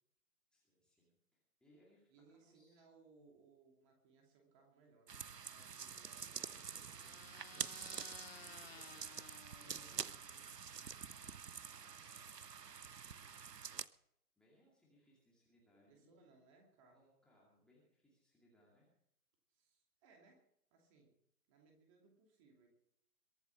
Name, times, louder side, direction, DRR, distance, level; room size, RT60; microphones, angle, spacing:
voice 1, 0.5-2.8 6.2-7.1 8.4-10.6 11.1-13.7 14.4-16.3 16.9-18.9, left 1 dB, ahead, -6 dB, 2.3 m, -72 dB
voice 2, 2.1-7.5 15.9-17.1 19.5-20.4 20.7-21.1 21.5-22.7, right 4 dB, 20° right, 1 dB, 2.7 m, -68 dB
sound 1, 5.1-13.9, right 6 dB, 85° right, 0.8 m, -47 dB
sound 2, 5.9-10.4, left 6 dB, 40° left, 0.6 m, -58 dB
22.5 x 8.1 x 6.1 m, 0.75 s
figure-of-eight pair, 145°, 47 cm